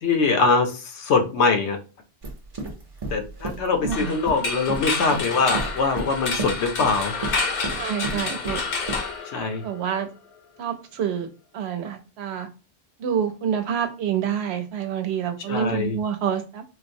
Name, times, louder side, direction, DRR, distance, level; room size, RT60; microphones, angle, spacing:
voice 1, 0.0-1.8 3.1-7.1 8.1-8.3 9.3-9.6 15.5-16.0, left 4 dB, 80° left, 4 dB, 1.0 m, -23 dB
sound 1, 2.2-9.1, right 3 dB, 35° right, 0.6 m, -33 dB
voice 2, 3.8-4.1 7.7-8.7 9.6-10.1 10.6-11.3 11.5-12.5 13.0-16.6, right 8 dB, 75° right, 8 dB, 0.9 m, -27 dB
sound 2, 3.9-9.9, left 4 dB, 60° left, 0.8 m, -29 dB
4.3 x 2.0 x 2.6 m, 0.33 s
omnidirectional pair, 1.1 m